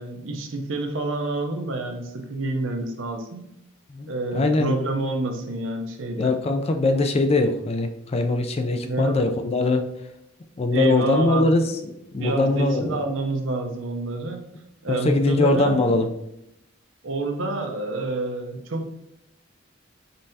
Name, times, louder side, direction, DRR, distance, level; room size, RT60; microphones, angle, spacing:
voice 1, 0.0-3.4 4.1-6.3 8.8-9.2 10.7-11.5 12.2-14.4 14.8-15.8 17.0-18.9, right 2 dB, 75° right, 4 dB, 0.7 m, -28 dB
voice 2, 3.9-4.8 6.2-9.8 10.6-13.0 14.9-16.1, left 2 dB, 30° left, 5 dB, 0.4 m, -22 dB
5.3 x 3.3 x 2.8 m, 0.82 s
head